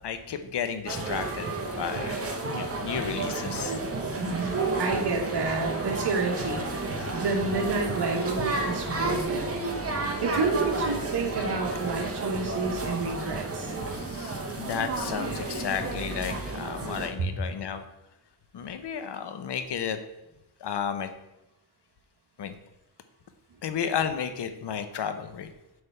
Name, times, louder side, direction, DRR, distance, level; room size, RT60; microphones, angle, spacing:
voice 1, 0.0-1.5 1.8-3.8 7.0-7.2 13.9-17.8 18.5-20.0 20.6-21.1 22.4-22.5 23.6-25.5, left 8 dB, 75° left, 9 dB, 0.7 m, -33 dB
sound 1, 0.9-17.1, right 2 dB, 35° right, 1.0 m, -31 dB
voice 2, 4.2-9.5 10.2-13.7, right 3 dB, 70° right, 2 dB, 1.3 m, -29 dB
7.8 x 3.4 x 5.6 m, 0.93 s
wide cardioid pair, 120°, 41 cm